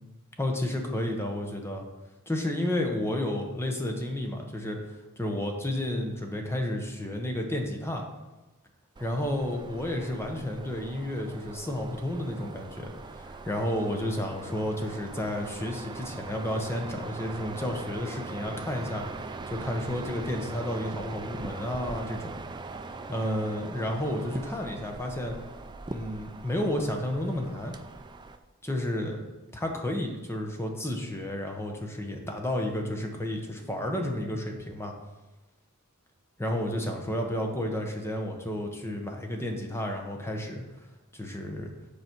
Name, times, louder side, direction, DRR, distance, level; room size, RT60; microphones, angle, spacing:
voice 1, 0.4-1.9 2.3-4.8 5.2-8.0 9.0-19.0 19.5-22.3 23.1-25.4 25.9-27.7 28.6-29.2 29.5-34.9 36.4-40.6 41.1-41.7, left 1 dB, 10° left, 3 dB, 0.9 m, -31 dB
sound 1, 9.0-28.4, right 3 dB, 20° right, 0.4 m, -41 dB
8.1 x 5.0 x 4.5 m, 1.1 s
head